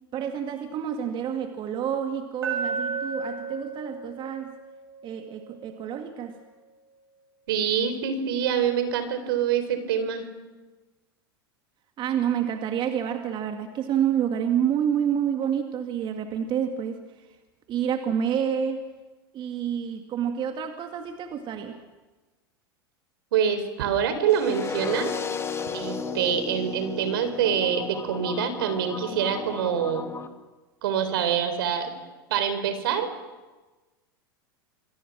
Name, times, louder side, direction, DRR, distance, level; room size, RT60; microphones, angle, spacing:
voice 1, 0.1-4.5 5.0-6.4 12.0-17.0 17.7-18.8 19.3-21.8, right 8 dB, 40° right, 6 dB, 2.0 m, -28 dB
Glass, 2.4-6.5, right 4 dB, 90° right, 6.6 m, -34 dB
voice 2, 7.5-10.3 23.3-25.1 25.7-30.1 30.8-31.9 32.3-33.1, right 8 dB, 70° right, 9 dB, 3.8 m, -25 dB
sound 1, 24.3-30.3, left 5 dB, 20° left, 2.0 m, -34 dB
27.5 x 22.5 x 6.2 m, 1.2 s
hypercardioid pair, 95°, 12 cm